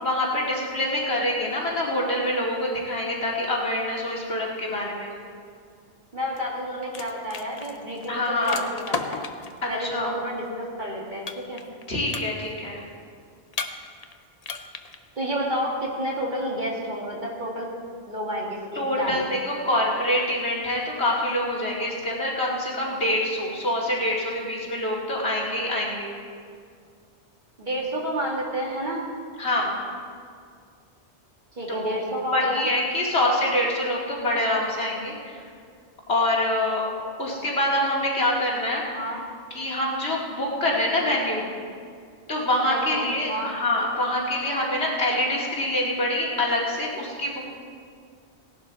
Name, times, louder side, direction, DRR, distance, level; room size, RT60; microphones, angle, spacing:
voice 1, 0.0-5.1 8.1-8.6 9.6-10.1 11.9-12.8 18.8-26.1 29.4-29.7 31.7-32.0 32.3-35.4 36.1-36.8 37.2-38.8 39.5-41.5 42.3-47.4, left 1 dB, 65° left, -4 dB, 2.6 m, -25 dB
voice 2, 6.1-9.2 9.7-11.6 15.2-17.7 18.1-19.3 27.6-29.1 31.6-32.7 38.9-39.2 42.7-43.6, equal, 45° right, -3 dB, 2.3 m, -30 dB
sound 1, 6.4-6.6 6.8-9.6 11.3-11.8 12.1-12.7 13.5-14.1 14.4-14.9, left 4 dB, 40° left, 0.7 m, -34 dB
17.5 x 11.5 x 4.1 m, 2.2 s
omnidirectional pair, 1.2 m